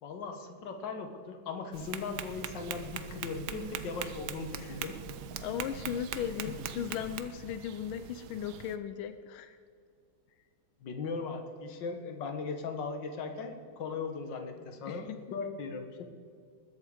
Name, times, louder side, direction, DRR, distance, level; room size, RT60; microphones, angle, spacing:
voice 1, 0.0-5.0 6.4-6.5 10.8-16.0, left 4 dB, 65° left, 5 dB, 1.9 m, -38 dB
Tap, 1.7-7.2, right 9 dB, 65° right, 1.1 m, -41 dB
sound 1, 2.1-8.8, right 8 dB, 85° right, 1.5 m, -50 dB
voice 2, 5.4-9.6 14.9-15.2, left 9 dB, 90° left, 10 dB, 1.5 m, -37 dB
20.5 x 7.6 x 5.0 m, 2.2 s
omnidirectional pair, 2.2 m